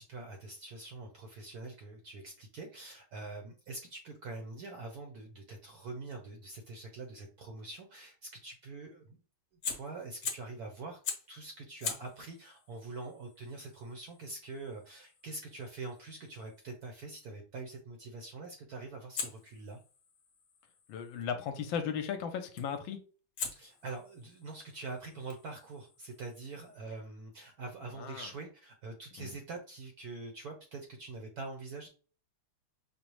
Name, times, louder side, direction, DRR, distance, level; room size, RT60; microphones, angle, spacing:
voice 1, 0.0-9.2 9.6-11.0 11.3-19.8 23.5-31.9, right 3 dB, 70° right, 3 dB, 0.9 m, -44 dB
Fire, 9.5-10.6 11.0-11.4 11.8-16.7 19.1-21.2 22.6-22.9 23.4-26.8, left 6 dB, 55° left, 1.0 m, -44 dB
voice 2, 20.9-23.0 28.0-28.3 29.2-29.3, left 7 dB, 75° left, 7 dB, 1.3 m, -36 dB
5.3 x 2.0 x 3.0 m, 0.37 s
omnidirectional pair, 2.2 m